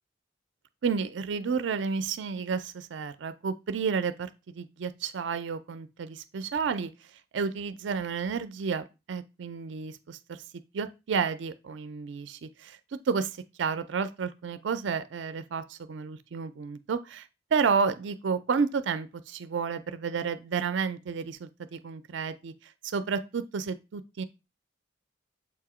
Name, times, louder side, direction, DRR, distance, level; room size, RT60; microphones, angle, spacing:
voice 1, 0.8-6.9 7.3-10.4 10.7-12.8 13.1-24.2, right 5 dB, 70° right, 0.4 m, -31 dB
7.1 x 2.8 x 4.8 m
head